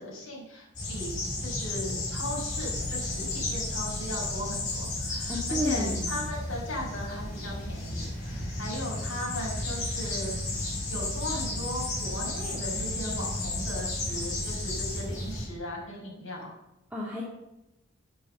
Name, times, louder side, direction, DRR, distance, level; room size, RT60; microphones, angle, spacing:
voice 1, 0.0-10.4 10.9-16.5, left 1 dB, 65° left, -4 dB, 5.7 m, -38 dB
sound 1, 0.7-15.4, left 2 dB, 35° left, 5.3 m, -33 dB
voice 2, 5.1-6.3 16.9-17.2, equal, 5° right, -6 dB, 2.2 m, -32 dB
9.7 x 9.0 x 7.8 m, 0.92 s
head